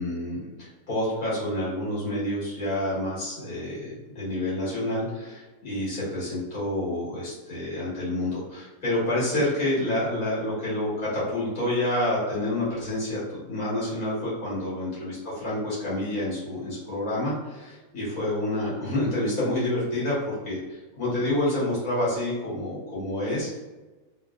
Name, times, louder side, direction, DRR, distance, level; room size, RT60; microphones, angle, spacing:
voice 1, 0.0-23.6, left 1 dB, 70° left, -8 dB, 1.9 m, -28 dB
3.5 x 2.2 x 2.2 m, 1.2 s
omnidirectional pair, 1.6 m